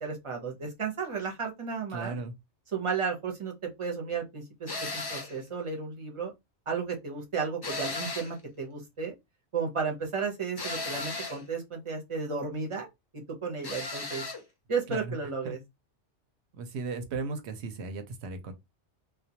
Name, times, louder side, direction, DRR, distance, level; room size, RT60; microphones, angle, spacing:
voice 1, 0.0-2.2 2.7-3.5 3.8-6.3 6.7-9.1 9.5-12.9 13.1-14.2 14.7-15.6, right 5 dB, 35° right, 0.6 m, -33 dB
voice 2, 1.9-2.3 14.9-15.2 15.4-15.5 16.5-18.5, right 3 dB, 70° right, 0.8 m, -36 dB
sound 1, 4.7-5.4 7.6-8.4 10.6-11.4 13.6-14.4, left 3 dB, 40° left, 0.3 m, -35 dB
2.2 x 2.2 x 2.7 m
omnidirectional pair, 1.2 m